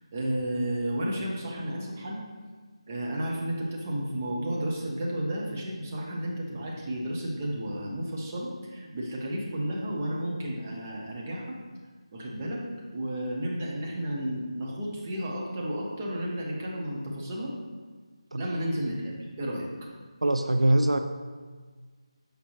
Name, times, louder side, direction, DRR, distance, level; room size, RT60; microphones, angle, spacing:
voice 1, 0.1-2.2 2.9-11.6 12.1-12.6 12.9-17.5 18.3-19.7, right 1 dB, 20° right, -3 dB, 0.8 m, -32 dB
voice 2, 20.2-21.0, right 1 dB, 80° right, 7 dB, 0.4 m, -22 dB
6.3 x 5.1 x 3.0 m, 1.5 s
figure-of-eight pair, 165°, 3 cm